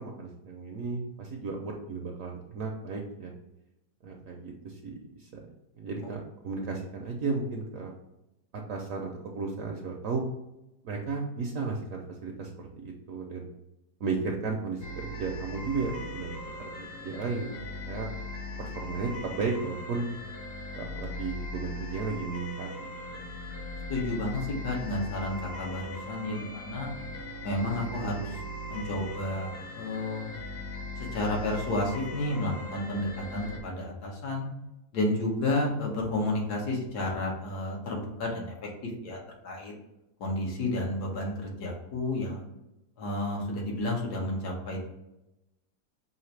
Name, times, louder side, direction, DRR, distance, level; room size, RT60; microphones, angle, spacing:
voice 1, 0.0-3.3 4.0-5.5 5.8-7.9 8.5-10.2 10.8-13.5 14.0-17.6 17.9-18.1 18.6-20.0 20.7-23.3, right 4 dB, 65° right, 1 dB, 0.9 m, -34 dB
sound 1, 14.8-33.6, left 1 dB, 55° left, 0.7 m, -39 dB
voice 2, 23.9-26.9 27.4-28.3 28.7-30.3 31.1-34.5 34.9-38.5 38.8-39.2 39.4-39.7 40.2-42.4 43.0-44.8, left 1 dB, 75° left, -1 dB, 1.7 m, -31 dB
5.6 x 2.6 x 3.2 m, 0.92 s
omnidirectional pair, 1.7 m